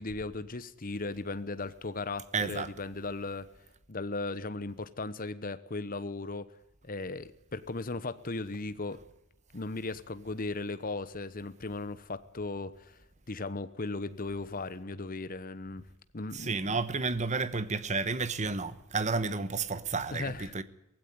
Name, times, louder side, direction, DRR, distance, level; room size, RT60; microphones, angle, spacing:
voice 1, 0.0-3.5 3.9-6.5 6.8-9.0 9.5-13.0 13.3-15.8 16.1-16.8 20.1-20.5, left 3 dB, 40° left, 1.0 m, -37 dB
voice 2, 2.3-2.7 16.3-20.6, right 4 dB, 30° right, 1.1 m, -31 dB
18.0 x 16.0 x 9.8 m
head